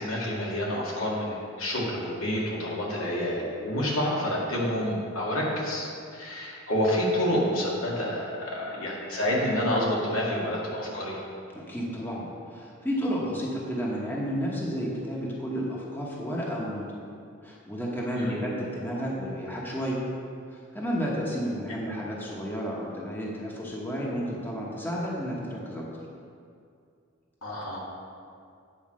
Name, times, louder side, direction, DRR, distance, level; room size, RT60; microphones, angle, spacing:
voice 1, 0.0-11.2 18.2-18.4 27.4-27.8, left 1 dB, 80° left, -5 dB, 2.1 m, -28 dB
voice 2, 11.5-16.8 17.4-20.0 20.5-25.9, equal, 10° left, -4 dB, 1.1 m, -32 dB
9.3 x 4.8 x 6.3 m, 2.4 s
head